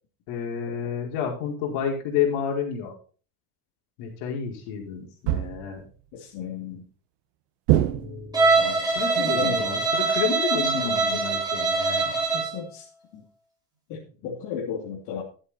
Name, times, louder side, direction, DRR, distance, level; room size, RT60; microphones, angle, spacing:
voice 1, 0.3-2.9 4.0-5.8 7.9-8.6 8.9-12.0, left 7 dB, 85° left, 0 dB, 5.0 m, -30 dB
sound 1, 5.3-5.9 7.7-8.5, right 14 dB, 70° right, 1.2 m, -24 dB
voice 2, 6.1-6.8 8.6-8.9 9.1-9.7 10.7-11.2 12.0-12.8 13.1-13.2 13.9-15.2, left 7 dB, 65° left, -3 dB, 3.1 m, -34 dB
Bowed string instrument, 8.3-12.6, right 3 dB, 10° right, 4.6 m, -23 dB
13.0 x 8.0 x 4.3 m, 0.38 s
cardioid pair, 170°, 43 cm